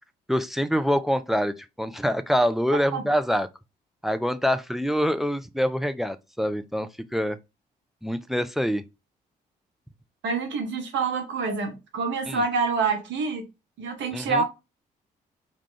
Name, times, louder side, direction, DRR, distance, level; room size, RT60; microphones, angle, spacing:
voice 1, 0.3-3.5 4.0-7.4 8.0-8.8 12.3-12.4 14.1-14.4, equal, ahead, 0.4 m, -25 dB
voice 2, 10.2-13.4 13.8-14.4, right 4 dB, 60° right, 1.0 m, -27 dB
3.1 x 2.3 x 3.7 m
hypercardioid pair, 45°, 21 cm